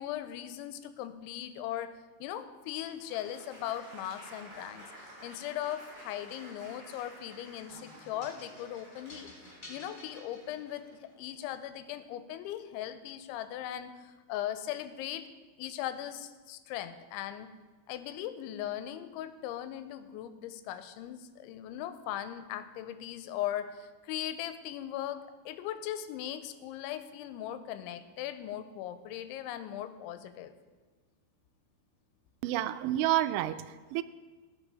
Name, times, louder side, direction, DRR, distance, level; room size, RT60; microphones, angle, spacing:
voice 1, 0.0-4.9 5.2-9.3 9.7-15.3 15.6-17.5 17.9-30.5, left 11 dB, 85° left, 11 dB, 3.0 m, -39 dB
Applause, 2.7-11.7, equal, 20° right, 3.8 m, -53 dB
sound 1, 7.7-11.1, left 1 dB, 25° left, 2.9 m, -51 dB
voice 2, 32.4-34.0, right 13 dB, 85° right, 12 dB, 2.9 m, -29 dB
18.0 x 6.7 x 4.8 m, 1.3 s
omnidirectional pair, 5.4 m